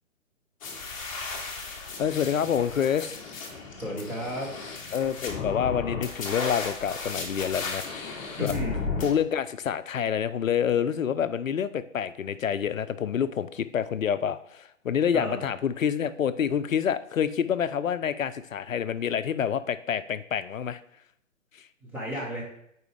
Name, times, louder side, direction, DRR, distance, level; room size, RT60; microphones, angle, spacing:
sound 1, 0.6-9.1, left 4 dB, 25° left, 1.1 m, -35 dB
voice 1, 2.0-3.2 4.9-8.5 9.0-20.8, left 8 dB, 80° left, 14 dB, 0.5 m, -27 dB
voice 2, 3.8-4.5 8.4-8.9 15.1-15.4 21.9-22.4, left 1 dB, 5° right, -5 dB, 0.9 m, -32 dB
8.1 x 4.5 x 3.4 m, 0.74 s
figure-of-eight pair, 135°, 39 cm